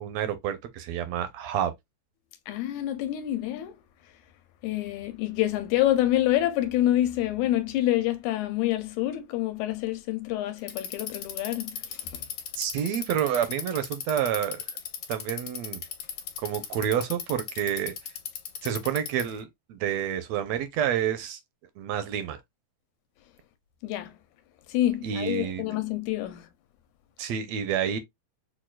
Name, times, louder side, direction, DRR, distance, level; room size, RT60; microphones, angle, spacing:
voice 1, 0.0-1.7 12.6-14.6 15.1-15.8 16.4-17.9 18.6-21.4 21.8-22.4 25.0-25.6 27.2-28.0, right 9 dB, 75° right, 1.7 m, -29 dB
voice 2, 2.5-3.8 4.6-12.3 23.8-24.2 24.7-26.5, left 14 dB, 90° left, 2.0 m, -27 dB
Bicycle, 10.6-19.4, left 8 dB, 70° left, 1.4 m, -36 dB
6.1 x 2.4 x 2.3 m
omnidirectional pair, 3.3 m